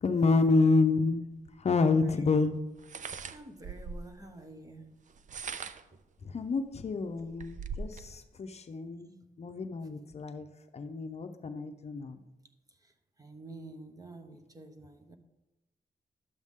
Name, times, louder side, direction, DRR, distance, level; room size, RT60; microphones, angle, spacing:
voice 1, 0.0-1.2 1.6-2.5 6.2-10.5 10.7-12.2, left 3 dB, 45° left, 7 dB, 0.7 m, -28 dB
sound 1, 1.5-1.6 2.8-4.2 5.1-6.0 6.6-6.7 7.0-8.1, right 5 dB, 55° right, 0.5 m, -40 dB
voice 2, 3.3-4.9 9.5-9.6 12.8-12.9 13.2-15.2, right 2 dB, 25° right, 6 dB, 1.0 m, -48 dB
12.0 x 8.0 x 3.7 m, 0.98 s
wide cardioid pair, 120°, 15 cm